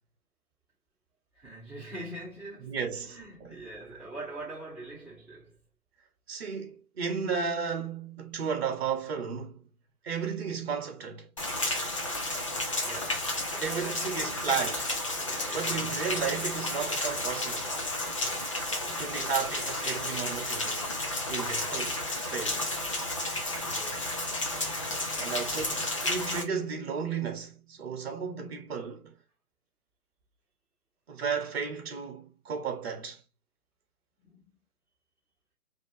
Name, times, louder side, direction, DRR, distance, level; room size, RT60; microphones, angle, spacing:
voice 1, 1.3-5.6 12.3-14.4 15.2-16.7 18.1-18.5 23.6-24.3 25.1-25.6 34.2-34.5, right 2 dB, 5° right, 3.1 m, -45 dB
voice 2, 2.6-3.5 6.3-9.7 10.0-11.3 13.6-15.0 15.5-17.8 18.9-22.7 24.9-29.2 31.1-33.2, right 6 dB, 40° right, 1.5 m, -34 dB
Rain, 11.4-26.4, left 2 dB, 20° left, 0.6 m, -32 dB
5.1 x 3.0 x 2.9 m
figure-of-eight pair, 150°, 46 cm